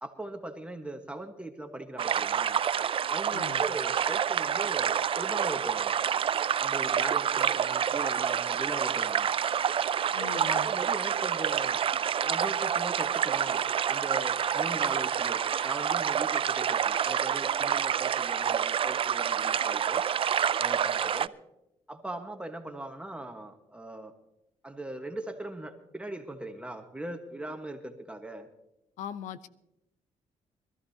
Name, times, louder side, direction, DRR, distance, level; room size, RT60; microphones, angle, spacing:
voice 1, 0.0-2.6 3.1-5.9 6.6-9.3 10.2-11.8 12.2-20.0 20.6-21.3 21.9-24.1 24.6-28.5, right 1 dB, 10° right, 4 dB, 1.4 m, -40 dB
sound 1, 2.0-21.3, right 8 dB, 45° right, 0.5 m, -28 dB
voice 2, 3.3-3.6 10.1-10.7 29.0-29.5, left 8 dB, 85° left, 14 dB, 0.8 m, -40 dB
23.5 x 13.5 x 2.8 m, 0.90 s
cardioid pair, 75°, 12 cm